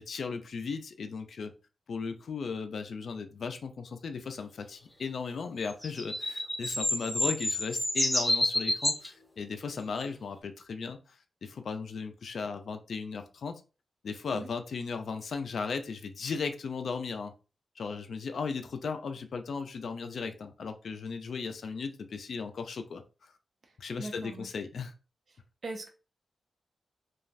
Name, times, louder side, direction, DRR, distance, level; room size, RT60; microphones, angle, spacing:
voice 1, 0.0-1.5 1.9-13.6 14.0-17.3 17.8-23.3 23.8-24.9, left 5 dB, 65° left, 0.3 m, -36 dB
sound 1, 5.7-9.1 10.0-10.1, left 1 dB, 10° left, 0.8 m, -29 dB
voice 2, 24.0-24.5 25.6-25.9, right 2 dB, 50° right, 0.6 m, -40 dB
3.1 x 2.3 x 2.5 m
wide cardioid pair, 160°, 0 cm